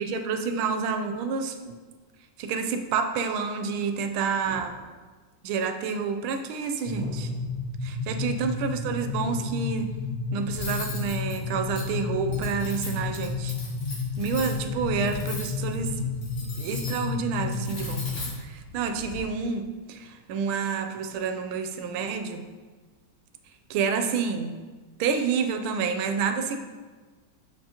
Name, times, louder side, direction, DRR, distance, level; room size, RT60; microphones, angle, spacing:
voice 1, 0.0-1.8 2.4-4.8 5.4-7.3 7.8-9.9 10.3-13.5 14.2-16.1 16.4-18.1 18.4-22.5 23.7-24.6 25.0-26.6, right 5 dB, 85° right, 6 dB, 1.5 m, -29 dB
sound 1, 4.4-5.3 6.9-7.7 9.2-9.9 11.3-11.9 13.5-13.6, right 3 dB, 55° right, 1.1 m, -48 dB
sound 2, 6.9-18.4, left 4 dB, 60° left, 0.7 m, -32 dB
Cutlery silverware, 10.5-19.2, left 2 dB, 85° left, 2.6 m, -39 dB
7.8 x 6.7 x 2.9 m, 1.4 s
omnidirectional pair, 2.2 m